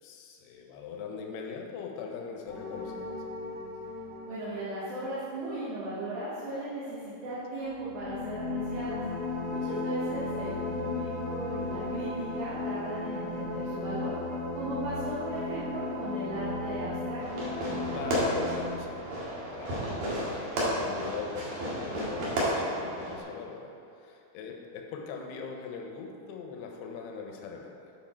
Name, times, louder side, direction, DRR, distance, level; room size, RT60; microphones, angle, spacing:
voice 1, 0.0-3.2 17.9-19.0 19.5-27.9, left 5 dB, 80° left, 2 dB, 2.7 m, -41 dB
sound 1, 2.5-5.9 7.7-18.8, left 3 dB, 55° left, 1.0 m, -35 dB
voice 2, 4.2-9.0 9.5-14.1 14.5-17.4, right 2 dB, 85° right, -10 dB, 3.8 m, -37 dB
Fireworks, 17.2-23.2, equal, 60° right, 3.1 m, -32 dB
9.8 x 5.9 x 4.4 m, 2.6 s
omnidirectional pair, 4.8 m